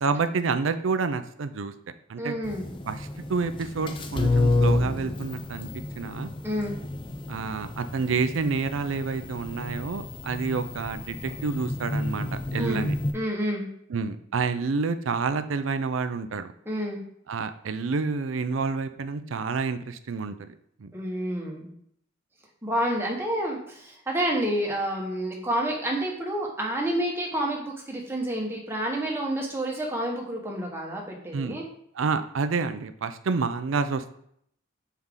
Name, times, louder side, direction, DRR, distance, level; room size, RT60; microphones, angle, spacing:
voice 1, 0.0-1.7 2.1-2.4 2.9-5.7 6.0-6.3 7.3-13.0 13.9-16.5 17.3-20.5 20.8-20.9 31.3-31.6 32.0-34.1, right 4 dB, 75° right, 10 dB, 0.5 m, -29 dB
voice 2, 2.2-2.7 6.4-6.7 12.6-12.8 13.1-13.7 16.6-17.0 20.9-21.7 22.6-31.6, right 1 dB, 10° right, -2 dB, 1.2 m, -29 dB
sound 1, 2.4-13.1, left 2 dB, 25° left, 0.4 m, -30 dB
5.5 x 4.6 x 3.7 m, 0.70 s
head